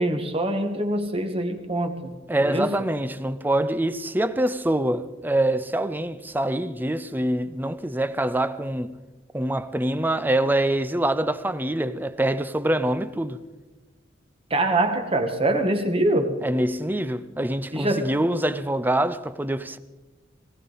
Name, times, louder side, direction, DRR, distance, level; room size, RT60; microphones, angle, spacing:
voice 1, 0.0-2.1 2.4-2.7 14.5-16.3 17.7-18.2, right 1 dB, 30° right, 1.4 m, -24 dB
voice 2, 2.3-8.9 9.3-13.4 16.4-19.8, right 1 dB, 10° right, 0.5 m, -25 dB
19.5 x 17.0 x 4.0 m
head